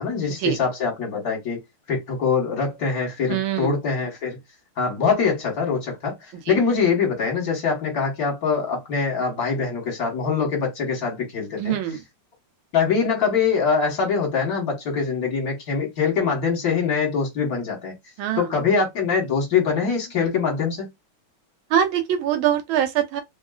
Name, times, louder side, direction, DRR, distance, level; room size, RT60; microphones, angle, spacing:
voice 1, 0.0-1.6 1.9-4.4 4.8-6.1 6.5-11.7 12.7-17.9 18.4-20.9, left 5 dB, 50° left, 1.5 m, -23 dB
voice 2, 3.3-3.8 6.5-6.6 11.6-12.0 18.2-18.4 21.7-23.2, right 10 dB, 75° right, 1.3 m, -23 dB
3.6 x 2.3 x 2.3 m
omnidirectional pair, 2.4 m